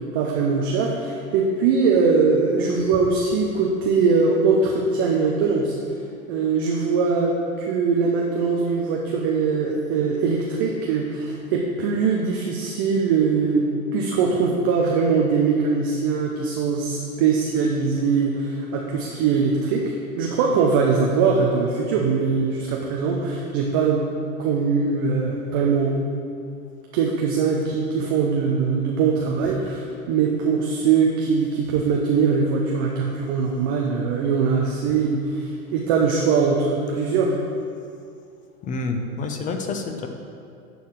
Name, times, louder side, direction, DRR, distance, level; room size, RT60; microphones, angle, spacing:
voice 1, 0.0-5.7 6.3-19.8 20.1-24.1 24.4-26.0 26.9-37.3, right 5 dB, 20° right, -1 dB, 0.3 m, -21 dB
voice 2, 38.6-40.1, left 3 dB, 20° left, 5 dB, 0.6 m, -28 dB
11.0 x 3.9 x 6.2 m, 2.4 s
hypercardioid pair, 105°, 45 cm